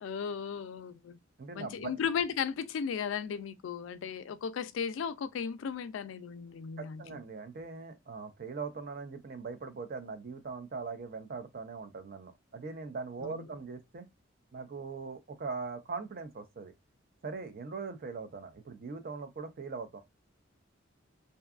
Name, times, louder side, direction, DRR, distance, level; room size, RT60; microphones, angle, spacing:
voice 1, 0.0-1.2 1.5-7.0 13.2-13.5, left 7 dB, 70° left, 0.3 m, -35 dB
voice 2, 1.4-1.9 6.8-14.1 14.5-16.7 17.2-20.0, right 4 dB, 50° right, 0.5 m, -41 dB
2.6 x 2.2 x 2.3 m
head